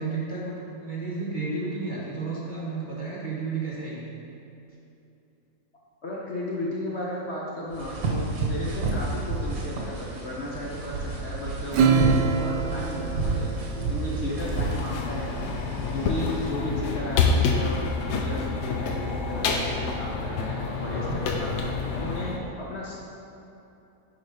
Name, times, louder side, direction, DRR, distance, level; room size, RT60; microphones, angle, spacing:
voice 1, 0.0-4.1 20.8-21.2, right 3 dB, 30° right, -6 dB, 1.2 m, -32 dB
voice 2, 6.0-15.4 15.9-22.9, left 1 dB, 45° left, -5 dB, 1.1 m, -34 dB
sound 1, 7.7-16.5, right 3 dB, 55° right, 1.5 m, -31 dB
Acoustic guitar / Strum, 11.7-14.6, right 5 dB, 80° right, 1.2 m, -25 dB
sound 2, 14.4-22.4, left 4 dB, 80° left, 1.3 m, -28 dB
10.0 x 4.1 x 4.9 m, 2.8 s
omnidirectional pair, 1.8 m